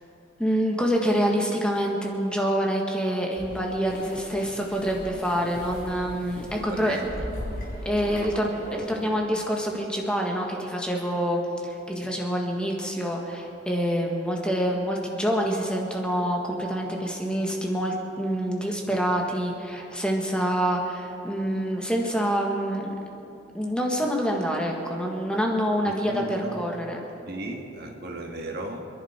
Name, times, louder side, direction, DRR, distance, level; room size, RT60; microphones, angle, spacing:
voice 1, 0.4-7.0 7.8-22.9 23.5-27.0, equal, 5° left, 0 dB, 1.5 m, -26 dB
sound 1, 3.4-9.1, equal, 50° left, 4.2 m, -39 dB
voice 2, 6.5-7.1 8.0-8.3 8.7-9.3 12.0-12.1 25.9-26.6 27.2-28.9, right 1 dB, 55° right, 2 dB, 1.6 m, -36 dB
27.5 x 11.0 x 4.4 m, 2.9 s
head